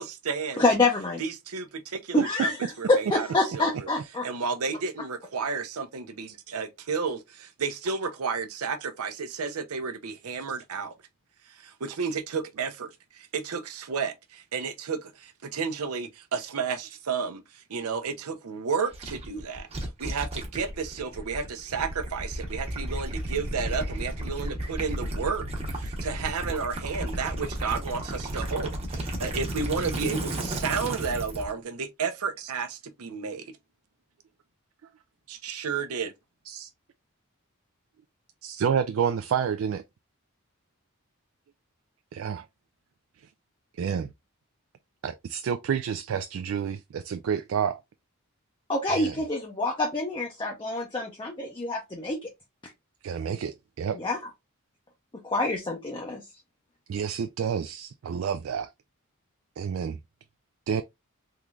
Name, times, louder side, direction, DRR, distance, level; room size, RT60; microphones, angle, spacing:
voice 1, 0.0-0.6 1.2-3.3 3.5-3.9 4.2-10.9 11.5-33.5 35.3-36.1, right 5 dB, 85° right, 0.7 m, -32 dB
voice 2, 0.6-1.2 2.1-2.5 2.9-4.3 48.7-52.3 52.6-52.7 53.9-54.2 55.2-56.2, left 2 dB, 20° left, 0.6 m, -26 dB
Gurgling / Liquid, 18.9-31.5, right 1 dB, 25° right, 0.9 m, -33 dB
voice 3, 38.4-39.8 42.1-42.5 43.8-44.1 45.0-47.8 48.9-49.1 53.0-54.0 56.9-58.7 59.6-60.0 60.7-60.8, right 7 dB, 60° right, 0.3 m, -29 dB
3.7 x 3.1 x 2.3 m
head